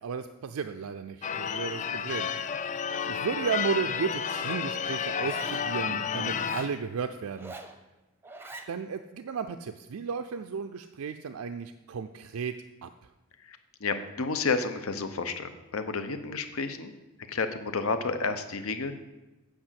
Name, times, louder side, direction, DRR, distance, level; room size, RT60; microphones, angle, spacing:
voice 1, 0.0-2.5 3.1-7.5 8.7-12.5 12.8-12.9, right 6 dB, 80° right, 8 dB, 0.4 m, -34 dB
Church bell / Car / Alarm, 1.2-6.8, left 7 dB, 35° left, 0.4 m, -31 dB
Zipper (clothing), 4.0-4.6 5.2-5.7 6.3-6.7 7.3-7.8 8.2-8.7, right 2 dB, 10° right, 0.6 m, -44 dB
voice 2, 13.4-16.9 17.3-19.0, left 4 dB, 75° left, 9 dB, 0.8 m, -31 dB
8.8 x 5.0 x 7.5 m, 1.1 s
head